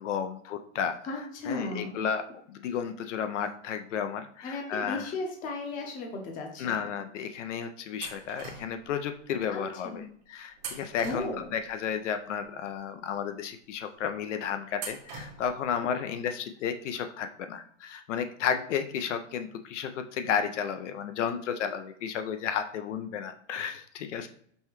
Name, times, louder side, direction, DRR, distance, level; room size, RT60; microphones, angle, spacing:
voice 1, 0.0-5.1 6.6-10.0 10.3-24.3, left 7 dB, 75° left, 8 dB, 0.5 m, -33 dB
voice 2, 1.0-2.0 4.4-6.8 9.5-10.0 11.0-11.5, left 3 dB, 20° left, 2 dB, 0.7 m, -35 dB
sound 1, 8.0-8.9 10.6-11.7 14.7-15.7, right 5 dB, 40° right, 0.8 m, -42 dB
5.4 x 2.2 x 3.0 m, 0.63 s
hypercardioid pair, 145°, 37 cm